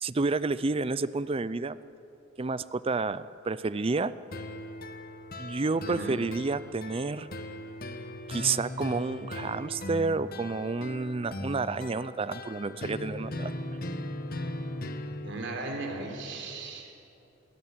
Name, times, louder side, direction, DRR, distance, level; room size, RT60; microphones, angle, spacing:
voice 1, 0.0-1.8 2.4-4.1 5.4-7.3 8.3-13.5, right 3 dB, 30° right, 16 dB, 0.5 m, -30 dB
sound 1, 4.3-15.3, left 1 dB, 50° left, 1.3 m, -38 dB
voice 2, 5.8-6.2 15.2-16.9, right 2 dB, 65° right, 2 dB, 3.9 m, -36 dB
20.5 x 17.5 x 9.6 m, 2.8 s
head